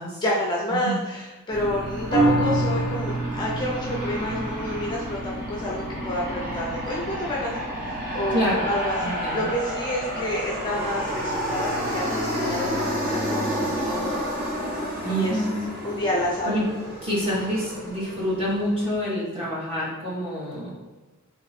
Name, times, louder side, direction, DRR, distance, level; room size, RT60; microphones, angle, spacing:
voice 1, 0.2-14.2 15.1-15.3 15.8-16.5, equal, 20° left, -4 dB, 0.5 m, -29 dB
Aircraft, 1.5-18.9, equal, 40° right, 1.2 m, -30 dB
sound 1, 2.1-8.8 9.2-9.3, right 1 dB, 65° right, 1.2 m, -29 dB
voice 2, 8.3-8.6 9.0-9.5 15.0-15.5 16.4-16.6 17.0-20.7, equal, 25° right, -8 dB, 1.5 m, -27 dB
3.5 x 3.0 x 4.1 m, 1.2 s
head